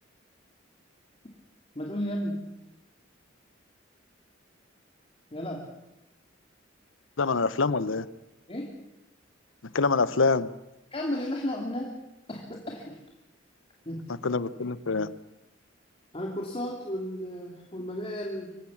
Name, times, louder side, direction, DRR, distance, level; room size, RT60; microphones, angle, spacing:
voice 1, 1.7-2.4 5.3-5.6 8.5-8.7 10.9-11.9 12.3-13.0 13.9-14.0 16.1-18.5, left 1 dB, 30° left, 0 dB, 2.5 m, -33 dB
voice 2, 7.2-8.0 9.7-10.5 14.2-15.1, left 4 dB, 90° left, 17 dB, 0.8 m, -25 dB
25.0 x 16.0 x 7.3 m, 0.97 s
head